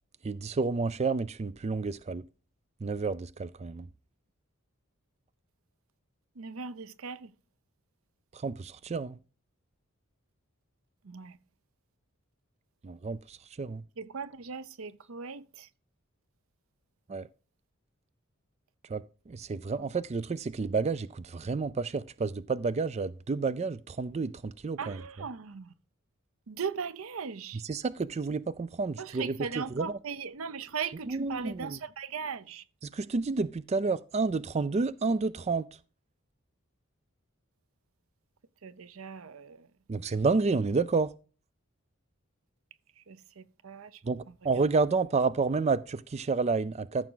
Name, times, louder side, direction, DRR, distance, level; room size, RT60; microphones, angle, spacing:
voice 1, 0.2-2.3 2.8-3.9 8.3-9.2 12.8-13.8 17.1-17.3 18.9-25.0 27.7-30.0 31.1-31.8 32.9-35.7 39.9-41.1 44.0-47.1, right 4 dB, 30° right, 0.4 m, -30 dB
voice 2, 6.3-7.3 11.0-11.4 14.0-15.7 19.8-19.9 24.8-25.7 26.5-27.6 29.0-32.7 38.6-39.7 42.9-44.0 44.5-44.6, right 6 dB, 85° right, 0.7 m, -39 dB
14.0 x 6.1 x 3.9 m
head